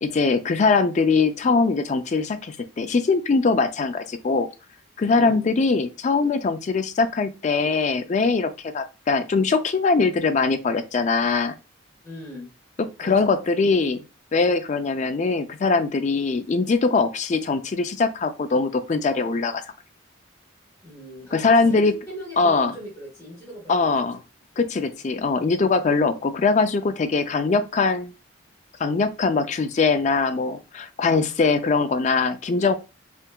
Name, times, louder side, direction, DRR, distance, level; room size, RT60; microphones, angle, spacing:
voice 1, 0.0-4.5 5.0-11.5 13.0-14.0 14.3-19.6 21.3-21.9 22.4-22.7 23.7-24.2 24.6-28.1 28.8-32.7, left 4 dB, 35° left, 0.3 m, -22 dB
voice 2, 5.1-5.4 12.0-12.5 13.0-13.3 20.8-23.9, equal, 15° left, 1.3 m, -39 dB
3.3 x 2.8 x 2.2 m
head